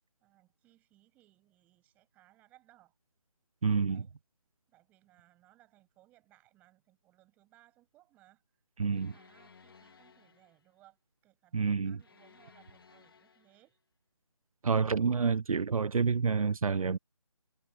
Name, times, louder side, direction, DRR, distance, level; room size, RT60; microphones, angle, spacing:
voice 1, 0.2-2.9 3.9-4.1 4.7-8.4 8.9-13.8, right 16 dB, 10° right, 7.6 m, -65 dB
voice 2, 3.6-4.0 8.8-9.1 11.5-12.0 14.6-17.0, right 5 dB, 80° right, 0.5 m, -28 dB
sound 1, 8.9-10.7 12.0-13.7, left 5 dB, 40° left, 2.4 m, -60 dB
figure-of-eight pair, 165°, 18 cm